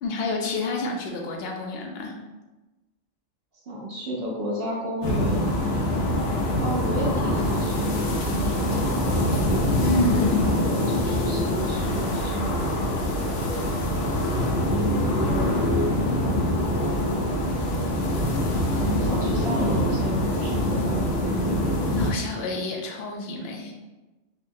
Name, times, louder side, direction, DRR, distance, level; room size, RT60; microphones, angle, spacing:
voice 1, 0.0-2.1 9.8-10.5 21.9-23.7, left 2 dB, 60° left, 1 dB, 0.7 m, -28 dB
voice 2, 3.6-5.5 6.6-10.0 10.4-13.0 14.7-16.0 18.7-21.6, right 1 dB, 60° right, -4 dB, 0.7 m, -32 dB
sound 1, 5.0-22.1, left 1 dB, 80° left, 1.0 m, -24 dB
3.8 x 2.1 x 2.6 m, 1.1 s
omnidirectional pair, 1.4 m